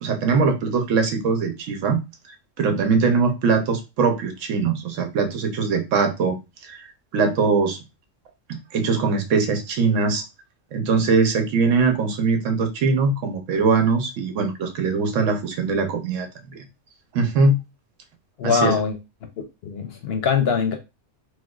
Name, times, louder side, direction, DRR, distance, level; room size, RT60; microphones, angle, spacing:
voice 1, 0.0-2.0 2.6-6.4 6.6-6.9 7.1-7.8 8.5-10.2 10.7-16.6 17.1-17.6 18.4-18.8, right 4 dB, 85° right, 1.1 m, -21 dB
voice 2, 18.4-19.0 19.6-20.7, left 6 dB, 60° left, 0.7 m, -22 dB
4.5 x 2.1 x 2.3 m
omnidirectional pair, 1.3 m